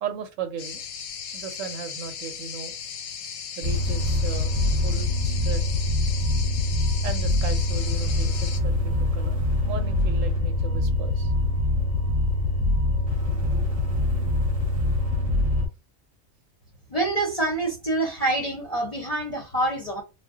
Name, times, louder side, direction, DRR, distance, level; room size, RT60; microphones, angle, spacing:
voice 1, 0.0-0.8 1.3-2.7 3.6-4.5 4.8-5.7 7.0-11.3, right 6 dB, 75° right, 0.9 m, -36 dB
sound 1, 0.6-8.6, left 7 dB, 90° left, 1.0 m, -37 dB
sound 2, 3.6-15.7, left 2 dB, 40° right, 0.7 m, -24 dB
voice 2, 16.9-20.0, right 2 dB, 40° left, 0.6 m, -26 dB
2.2 x 2.1 x 3.6 m
omnidirectional pair, 1.4 m